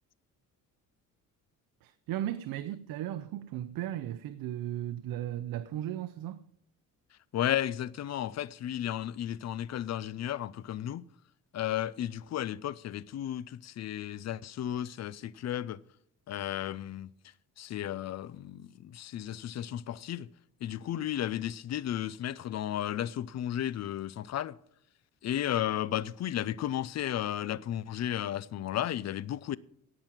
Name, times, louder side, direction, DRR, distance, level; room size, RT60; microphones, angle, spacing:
voice 1, 1.8-6.4, right 12 dB, 85° right, 0.7 m, -36 dB
voice 2, 7.3-11.0 11.5-15.8 16.3-17.1 17.6-20.3 20.6-24.5 25.2-29.6, left 11 dB, 50° left, 0.6 m, -34 dB
17.0 x 6.1 x 7.4 m
cardioid pair, 115°, 33 cm